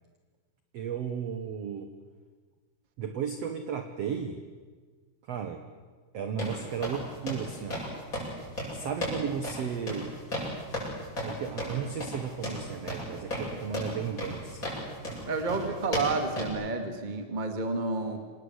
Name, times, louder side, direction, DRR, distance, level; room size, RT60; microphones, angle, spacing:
voice 1, 0.7-1.9 3.0-4.4 5.3-5.6 6.1-7.9 8.7-10.2 11.2-14.7 15.5-15.8, right 7 dB, 75° right, 7 dB, 1.5 m, -34 dB
sound 1, 6.4-16.5, equal, 20° left, 8.4 m, -35 dB
voice 2, 15.2-18.2, right 3 dB, 20° right, 6 dB, 1.2 m, -30 dB
26.0 x 19.5 x 8.1 m, 1.5 s
omnidirectional pair, 4.8 m